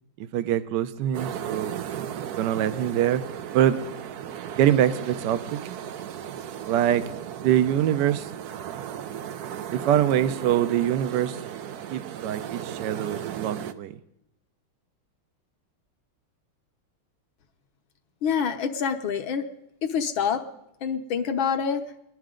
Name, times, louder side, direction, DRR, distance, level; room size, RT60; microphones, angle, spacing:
voice 1, 0.2-1.8 2.3-3.2 3.5-3.8 4.5-5.8 6.7-7.1 7.4-8.3 9.7-11.6 11.9-14.0, right 11 dB, 65° right, 1.2 m, -24 dB
sound 1, 1.1-13.7, right 9 dB, 80° right, 0.8 m, -36 dB
voice 2, 18.2-19.5 19.9-20.4 20.8-21.8, left 7 dB, 70° left, 1.7 m, -26 dB
21.5 x 11.5 x 3.8 m
omnidirectional pair, 2.4 m